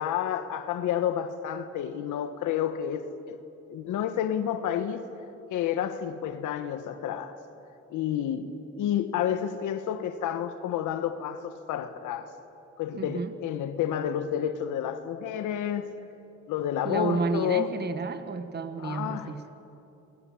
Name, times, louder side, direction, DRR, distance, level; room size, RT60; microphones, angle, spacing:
voice 1, 0.0-3.4 3.7-5.0 5.5-7.4 7.9-8.5 8.8-12.3 12.8-16.0 16.5-17.7 18.8-19.4, left 9 dB, 85° left, 1.3 m, -30 dB
voice 2, 13.0-13.3 16.8-19.4, right 4 dB, 35° right, 1.3 m, -31 dB
27.5 x 22.0 x 7.1 m
cardioid pair, 90°, 30 cm